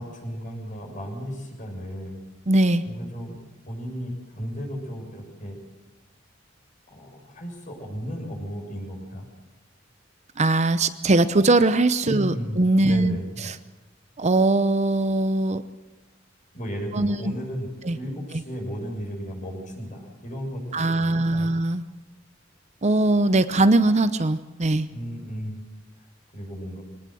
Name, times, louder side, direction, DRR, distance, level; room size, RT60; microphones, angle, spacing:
voice 1, 0.0-2.2 2.8-3.4 3.7-5.6 6.9-9.3 12.0-13.5 16.5-21.5 24.9-25.6 26.3-26.8, equal, 45° left, 2 dB, 6.7 m, -34 dB
voice 2, 2.5-2.8 10.4-13.2 13.4-13.6 14.2-15.6 16.9-17.3 17.8-18.0 18.3-18.4 20.7-21.8 22.8-24.9, right 2 dB, 35° right, 12 dB, 0.7 m, -21 dB
23.5 x 19.0 x 7.8 m, 1.1 s
head